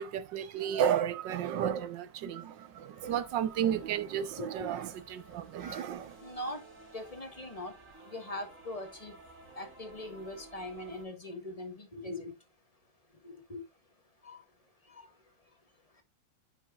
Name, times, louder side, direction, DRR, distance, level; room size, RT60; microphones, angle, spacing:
voice 1, 0.0-6.2, right 9 dB, 80° right, 1.5 m, -32 dB
sound 1, 3.0-11.1, right 2 dB, 45° right, 3.1 m, -54 dB
voice 2, 6.2-6.6 6.9-7.7 8.0-9.1 9.5-12.3 13.2-13.6 14.2-14.4 14.9-15.1, left 1 dB, 20° left, 1.6 m, -41 dB
9.3 x 6.5 x 2.4 m
omnidirectional pair, 2.0 m